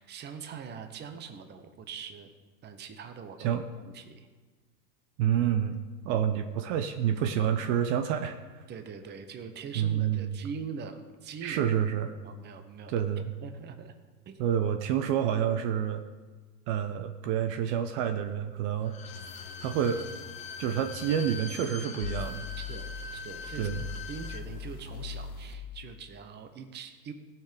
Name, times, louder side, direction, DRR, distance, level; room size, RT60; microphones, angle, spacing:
voice 1, 0.0-2.3 2.6-3.6 3.8-4.3 6.0-6.2 8.7-11.6 12.2-12.9 13.4-13.9 14.3-14.4 22.6-23.7 24.1-27.1, right 6 dB, 20° right, 7 dB, 0.9 m, -43 dB
voice 2, 5.2-5.8 6.0-8.4 9.7-10.4 11.4-12.1 12.9-13.3 14.4-16.0 16.7-19.0 19.6-20.0 20.6-22.5 23.6-23.8, right 9 dB, 45° right, 7 dB, 0.8 m, -28 dB
Bowed string instrument, 18.8-24.4 24.8-24.9, left 5 dB, 15° left, 0.5 m, -43 dB
sound 1, 19.1-21.4 22.0-25.5, left 6 dB, 60° left, 1.8 m, -41 dB
16.5 x 6.0 x 5.2 m, 1.4 s
hypercardioid pair, 120°, 48 cm